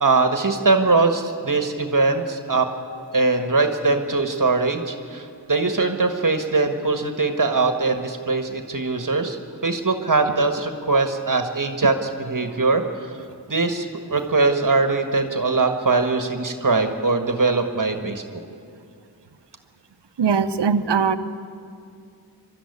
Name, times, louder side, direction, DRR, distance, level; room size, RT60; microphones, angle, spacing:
voice 1, 0.0-2.7 3.1-9.4 9.6-13.1 13.5-18.2, right 3 dB, 50° right, 6 dB, 1.6 m, -21 dB
voice 2, 20.2-21.2, right 6 dB, 80° right, 11 dB, 0.9 m, -20 dB
23.0 x 13.0 x 9.7 m, 2.4 s
wide cardioid pair, 55°, 41 cm